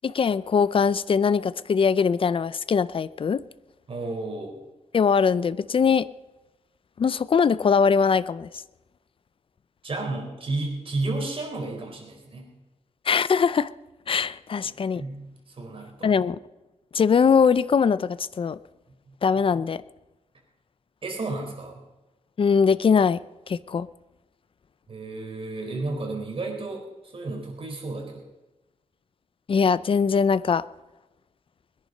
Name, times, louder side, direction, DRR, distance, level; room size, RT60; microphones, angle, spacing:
voice 1, 0.0-3.4 4.9-6.1 7.0-8.5 13.1-13.7 14.1-15.0 16.0-16.4 16.9-18.6 19.2-19.8 22.4-23.2 23.5-23.9 29.5-30.6, left 6 dB, 45° left, 17 dB, 0.5 m, -21 dB
voice 2, 3.9-4.6 9.8-12.5 14.6-16.1 19.1-19.2 21.0-21.8 24.9-28.3, right 2 dB, 50° right, 1 dB, 4.2 m, -32 dB
21.0 x 10.5 x 5.5 m, 1.0 s
wide cardioid pair, 100°, 12 cm